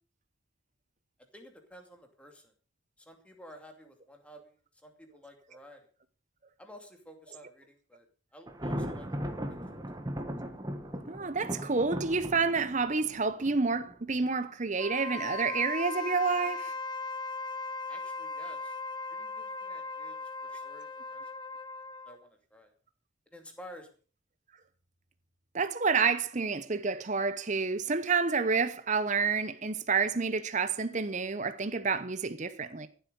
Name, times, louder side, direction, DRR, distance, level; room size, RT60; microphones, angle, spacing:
voice 1, 1.3-2.5 3.0-5.8 6.6-8.1 8.3-9.1 17.9-18.8 19.1-21.2 22.0-22.7 23.3-23.9, equal, 5° left, 2.6 m, -52 dB
Thunder, 8.5-14.3, equal, 20° right, 1.6 m, -38 dB
voice 2, 11.1-16.7 25.5-32.9, right 4 dB, 35° right, 0.8 m, -29 dB
Wind instrument woodwind instrument, 14.7-22.2, left 3 dB, 20° left, 0.6 m, -38 dB
15.0 x 8.0 x 6.7 m
head